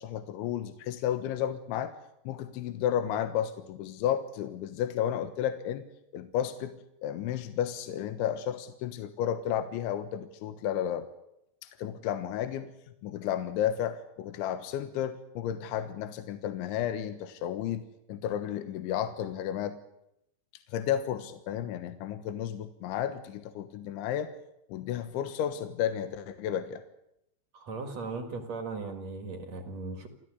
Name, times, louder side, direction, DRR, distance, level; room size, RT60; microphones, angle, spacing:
voice 1, 0.0-1.9 2.3-5.8 6.1-6.7 7.0-11.1 11.8-12.7 13.0-19.8 20.7-24.3 24.7-26.8, left 10 dB, 80° left, 9 dB, 3.6 m, -32 dB
voice 2, 27.5-30.1, right 3 dB, 50° right, 6 dB, 2.4 m, -37 dB
29.5 x 14.0 x 9.7 m, 0.82 s
omnidirectional pair, 5.4 m